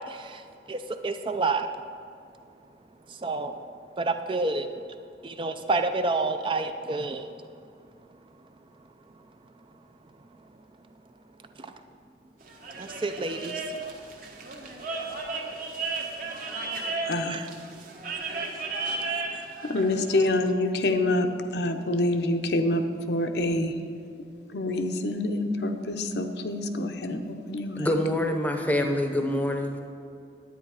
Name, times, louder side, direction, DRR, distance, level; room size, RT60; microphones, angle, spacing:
voice 1, 0.1-1.7 3.1-3.6 4.0-4.7 5.2-7.3 11.6-11.7 12.8-13.6 17.3-17.5 19.3-19.4, right 3 dB, 30° right, 8 dB, 0.4 m, -29 dB
sound 1, 12.4-20.2, right 3 dB, 50° right, 1.1 m, -34 dB
voice 2, 19.7-21.3 21.5-23.7 24.5-27.2 27.5-27.9, left 2 dB, 65° left, 6 dB, 0.7 m, -26 dB
voice 3, 27.8-29.8, left 1 dB, 10° left, 4 dB, 0.7 m, -26 dB
10.5 x 9.0 x 4.8 m, 2.3 s
head